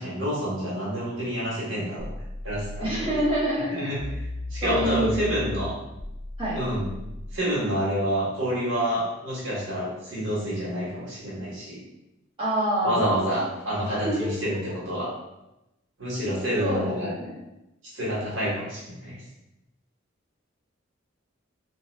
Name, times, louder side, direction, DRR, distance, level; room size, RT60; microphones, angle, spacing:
voice 1, 0.0-2.1 2.4-2.9 3.7-4.0 4.5-5.8 6.5-6.9 7.3-11.8 12.8-15.1 16.0-17.1 17.9-19.2, equal, 70° right, -6 dB, 1.0 m, -28 dB
sound 1, 2.0-3.4 4.0-7.4, left 2 dB, 40° left, 0.4 m, -36 dB
voice 2, 2.8-3.8 4.6-5.2 6.4-6.6 12.4-13.2 13.9-14.3 16.6-17.4, equal, 25° right, -8 dB, 1.2 m, -26 dB
2.9 x 2.2 x 3.2 m, 0.93 s
head